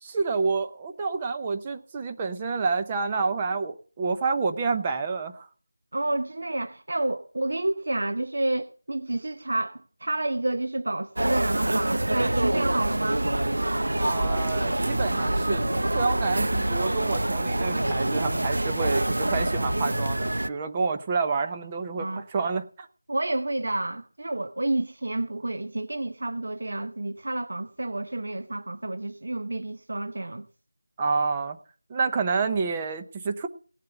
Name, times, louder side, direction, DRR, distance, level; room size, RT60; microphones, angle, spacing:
voice 1, 0.0-5.5 14.0-22.9 31.0-31.6 31.9-33.5, right 4 dB, 15° right, 0.7 m, -28 dB
voice 2, 5.9-13.3 18.9-19.1 22.0-22.2 23.1-30.4, right 2 dB, 55° right, 0.9 m, -30 dB
sound 1, 11.2-20.5, right 1 dB, 90° right, 0.8 m, -26 dB
17.5 x 7.8 x 6.7 m
figure-of-eight pair, 175°, 0 cm